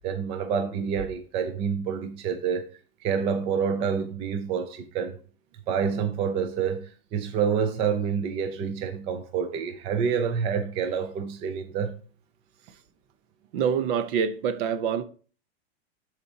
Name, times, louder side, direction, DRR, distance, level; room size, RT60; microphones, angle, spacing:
voice 1, 0.0-2.7 3.0-5.2 5.7-11.9, right 6 dB, 20° right, 0.4 m, -28 dB
voice 2, 13.5-15.0, right 7 dB, 55° right, 0.9 m, -26 dB
12.0 x 4.4 x 2.8 m
supercardioid pair, 150°, 32 cm